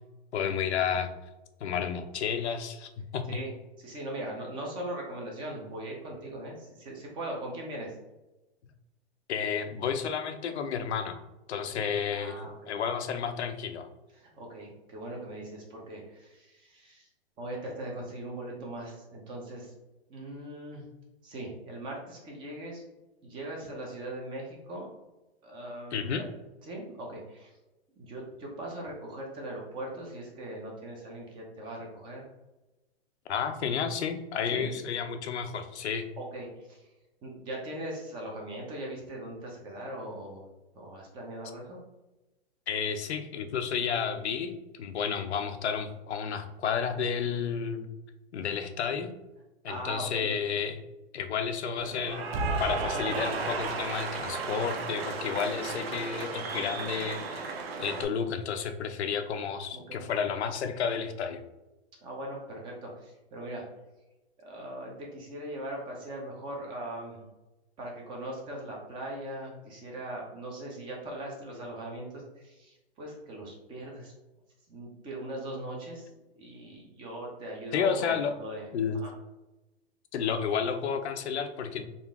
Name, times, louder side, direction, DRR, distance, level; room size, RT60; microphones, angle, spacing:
voice 1, 0.3-1.1 1.6-3.3 9.3-11.2 11.5-13.9 25.9-26.2 33.3-36.1 42.7-47.9 48.3-49.1 49.6-50.8 51.1-52.3 52.6-57.5 57.8-61.4 77.7-78.4 78.7-79.0 80.1-81.9, left 7 dB, 85° left, 7 dB, 0.6 m, -31 dB
voice 2, 3.8-8.0 12.1-12.8 14.2-17.1 17.4-19.7 20.1-20.8 21.2-22.8 23.2-24.9 25.4-26.3 26.6-27.5 28.0-32.2 34.5-34.7 36.2-36.9 37.2-40.5 40.7-41.8 49.7-50.3 59.7-60.1 62.0-63.6 64.4-67.2 67.8-74.1 74.7-76.1 76.4-78.7 78.9-79.1, right 1 dB, 15° right, -1 dB, 0.5 m, -40 dB
Cheering / Applause, 51.8-58.0, right 4 dB, 65° right, 0.7 m, -34 dB
3.7 x 2.4 x 3.5 m, 1.0 s
hypercardioid pair, 155°, 32 cm